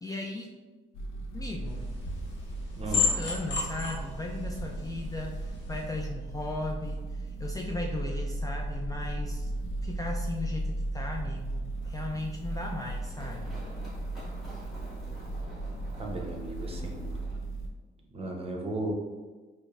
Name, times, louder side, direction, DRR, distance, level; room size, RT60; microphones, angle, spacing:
voice 1, 0.0-0.6 1.3-1.9 2.8-9.5 9.8-13.5, left 2 dB, 20° left, 0 dB, 0.3 m, -37 dB
sound 1, 0.9-17.7, right 2 dB, 85° left, 0.6 m, -36 dB
sound 2, 1.7-5.9, left 4 dB, 65° left, 1.0 m, -33 dB
voice 2, 2.8-3.1 15.9-17.1 18.1-18.9, right 1 dB, 30° right, 0 dB, 0.7 m, -35 dB
Run, 11.7-17.4, equal, ahead, 1.4 m, -49 dB
5.2 x 2.1 x 2.4 m, 1.3 s
cardioid pair, 90°, 20 cm